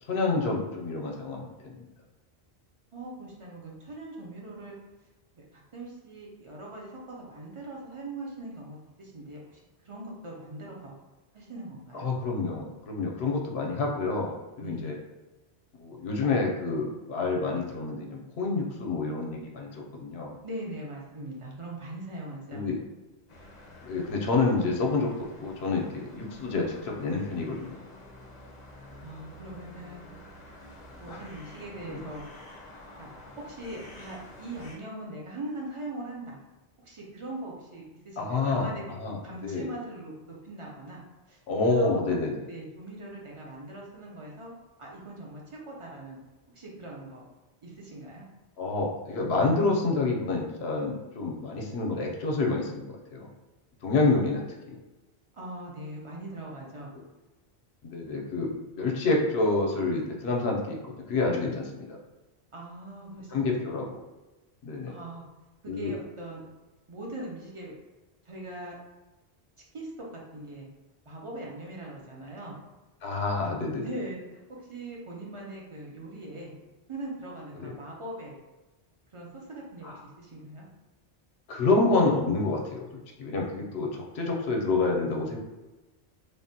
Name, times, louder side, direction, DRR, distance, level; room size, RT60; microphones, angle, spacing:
voice 1, 0.1-1.9 11.9-15.0 15.8-20.4 22.5-22.8 23.8-27.8 31.1-31.2 31.9-32.0 38.2-38.7 39.0-39.7 41.5-42.5 48.6-53.3 53.8-54.8 57.8-62.0 63.3-64.0 64.6-65.0 65.7-65.9 73.0-73.8 77.6-77.7 79.8-80.0 81.5-82.9 83.2-85.4, left 3 dB, 80° left, 0 dB, 0.8 m, -28 dB
voice 2, 2.9-4.8 5.4-10.9 11.3-12.1 14.6-15.0 20.4-22.7 29.0-30.0 31.0-32.3 33.0-33.1 33.4-36.4 36.8-40.1 40.4-41.0 41.3-41.4 41.7-42.2 42.5-44.5 44.8-46.2 46.5-47.2 47.6-48.2 55.3-56.9 62.5-63.6 64.9-65.2 65.6-66.4 66.9-67.8 68.2-68.8 69.7-70.7 71.1-72.6 73.8-74.4 74.7-76.6 76.9-78.3 79.1-80.6, right 1 dB, 45° right, -3 dB, 0.4 m, -41 dB
sound 1, 23.3-34.8, left 1 dB, 50° left, 0.6 m, -49 dB
3.4 x 2.1 x 2.6 m, 1.1 s
omnidirectional pair, 1.1 m